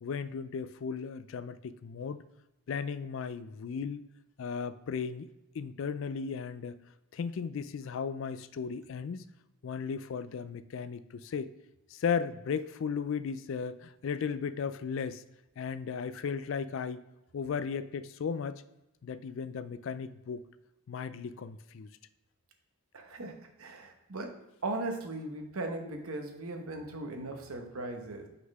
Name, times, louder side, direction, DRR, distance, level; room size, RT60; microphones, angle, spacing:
voice 1, 0.0-2.2 2.7-4.0 4.4-5.3 5.5-6.8 7.1-9.3 9.6-11.5 11.9-15.2 15.6-17.0 17.3-18.6 19.0-20.4 20.9-21.9, left 6 dB, 60° left, 15 dB, 0.3 m, -35 dB
voice 2, 22.9-24.3 24.6-28.3, right 2 dB, 80° right, 4 dB, 1.0 m, -38 dB
5.6 x 4.0 x 5.4 m, 0.95 s
head